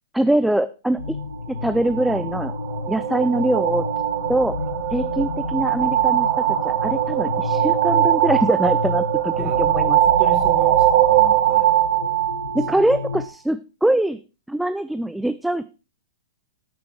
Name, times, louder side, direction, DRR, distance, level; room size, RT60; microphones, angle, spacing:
voice 1, 0.1-1.2 1.5-2.5 2.9-3.9 4.3-4.5 4.9-10.0 12.5-14.2 14.5-15.6, right 1 dB, 5° right, 12 dB, 0.5 m, -23 dB
sound 1, 1.0-13.3, left 3 dB, 85° left, 1.0 m, -31 dB
sound 2, 1.6-13.3, right 13 dB, 45° right, 1.1 m, -21 dB
voice 2, 9.4-11.7 12.7-12.8, right 4 dB, 25° right, 3 dB, 3.1 m, -37 dB
19.0 x 6.9 x 3.2 m, 0.32 s
hypercardioid pair, 115°, 2 cm